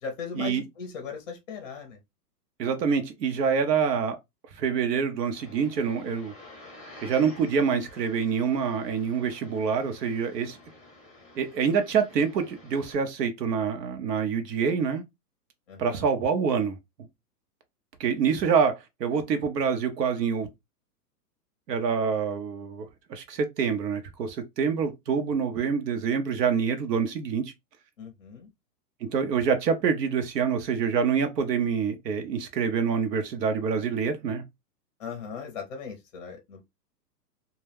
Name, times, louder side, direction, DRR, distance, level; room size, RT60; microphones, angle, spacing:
voice 1, 0.0-2.0 15.7-16.1 28.0-28.5 35.0-36.6, left 6 dB, 30° left, 0.5 m, -38 dB
voice 2, 2.6-4.2 4.5-6.3 7.0-10.6 11.4-15.0 15.8-16.8 18.0-20.5 21.7-27.5 29.0-34.4, right 6 dB, 75° right, 0.8 m, -26 dB
sound 1, 5.3-12.9, left 2 dB, ahead, 0.8 m, -50 dB
2.2 x 2.2 x 3.3 m
hypercardioid pair, 150°, 49 cm